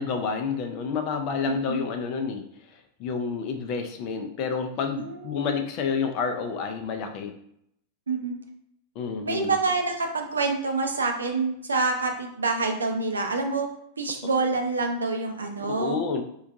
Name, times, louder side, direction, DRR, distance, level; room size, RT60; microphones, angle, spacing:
voice 1, 0.0-2.4 3.0-7.3 9.0-9.6 15.6-16.2, left 5 dB, 40° left, 6 dB, 0.4 m, -29 dB
voice 2, 1.5-1.8 5.0-5.6 8.1-8.4 9.2-13.7 14.0-16.0, right 3 dB, 75° right, 3 dB, 0.5 m, -27 dB
4.4 x 2.3 x 2.6 m, 0.73 s
figure-of-eight pair, 90°, 0 cm